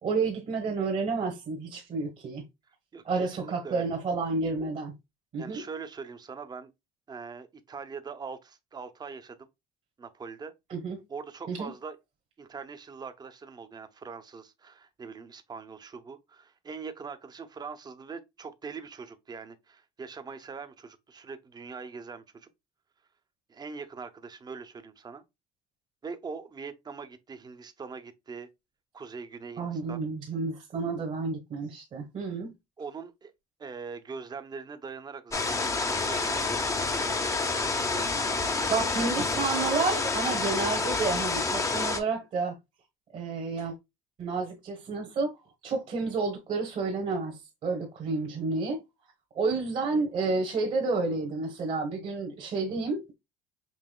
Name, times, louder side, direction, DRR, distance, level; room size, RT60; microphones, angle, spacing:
voice 1, 0.0-2.4 3.0-4.9 5.3-5.6 10.7-11.0 11.5-11.7 29.6-32.5 38.7-42.6 43.1-43.7 44.2-45.3 45.6-48.8 49.3-53.1, right 4 dB, 45° right, 1.1 m, -30 dB
voice 2, 2.9-3.9 5.4-6.7 7.1-9.5 10.0-10.5 11.1-12.0 12.4-22.5 23.5-25.2 26.0-28.5 28.9-30.0 32.8-33.3 33.6-37.3 37.7-39.0, right 5 dB, 25° right, 0.7 m, -42 dB
sound 1, 35.3-42.0, left 3 dB, 20° left, 0.7 m, -28 dB
5.6 x 2.9 x 2.2 m
supercardioid pair, 95°, 16 cm